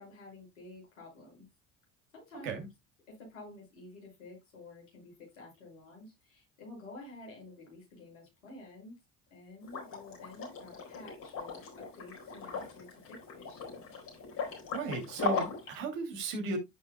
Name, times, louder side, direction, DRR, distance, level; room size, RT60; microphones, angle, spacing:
voice 1, 0.0-1.5 2.1-2.6 3.1-9.0 9.3-13.8, left 2 dB, 90° left, 5.8 m, -51 dB
Liquid, 9.6-15.8, left 5 dB, 60° left, 4.2 m, -39 dB
voice 2, 14.7-16.6, right 3 dB, 80° right, 2.8 m, -35 dB
14.0 x 5.2 x 2.2 m
hypercardioid pair, 65°, 39 cm